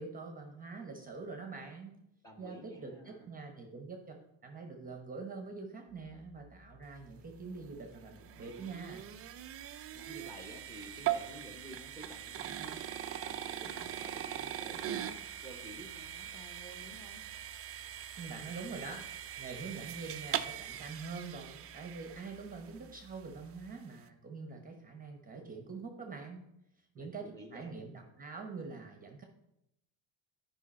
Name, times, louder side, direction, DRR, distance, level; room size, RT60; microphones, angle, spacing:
voice 1, 0.0-2.0 2.4-4.0 4.4-9.1 18.2-19.1 19.4-26.5 26.9-29.2, right 4 dB, 20° right, 3 dB, 0.9 m, -45 dB
voice 2, 2.2-3.3 9.7-17.2 27.0-27.8, equal, 5° left, 4 dB, 1.0 m, -52 dB
sound 1, 5.9-23.7, left 4 dB, 70° left, 3.3 m, -61 dB
sound 2, 7.6-22.8, right 11 dB, 35° right, 0.4 m, -41 dB
10.0 x 5.4 x 4.3 m, 0.84 s
cardioid pair, 135°, 47 cm